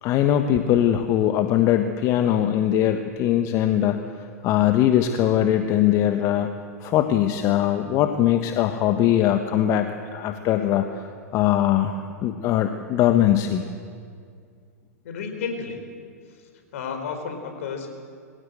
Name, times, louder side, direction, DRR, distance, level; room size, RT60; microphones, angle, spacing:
voice 1, 0.0-4.0 4.4-6.5 6.8-11.0 11.3-13.7, left 11 dB, 40° left, 7 dB, 1.3 m, -21 dB
voice 2, 15.0-15.8 16.7-17.9, left 5 dB, 60° left, 5 dB, 4.5 m, -31 dB
23.5 x 16.5 x 7.9 m, 2.2 s
figure-of-eight pair, 95°, 9 cm